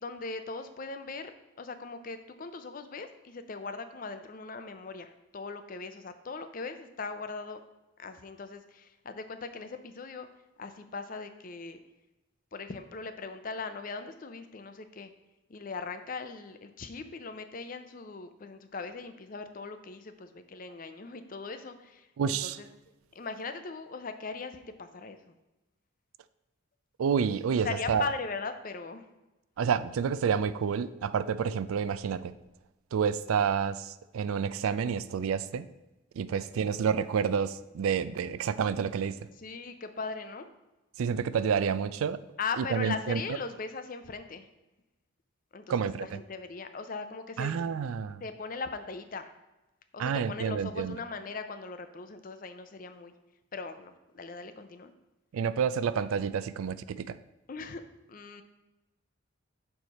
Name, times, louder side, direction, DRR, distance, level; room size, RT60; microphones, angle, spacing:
voice 1, 0.0-1.3 1.6-7.6 8.0-10.3 10.6-11.8 12.5-15.1 15.5-22.7 23.1-25.4 27.6-29.1 36.3-36.6 39.4-40.5 42.4-44.5 45.5-47.6 48.2-49.3 49.9-53.1 53.5-54.9 57.5-57.8 58.1-58.4, left 4 dB, 40° left, 9 dB, 0.5 m, -39 dB
voice 2, 22.2-22.6 27.0-28.0 29.6-32.3 32.9-35.7 36.2-39.3 41.0-42.2 42.6-43.2 45.7-46.2 47.4-48.2 50.0-51.0 55.3-57.2, right 7 dB, 85° right, 15 dB, 0.3 m, -29 dB
6.5 x 4.6 x 4.1 m, 1.0 s
head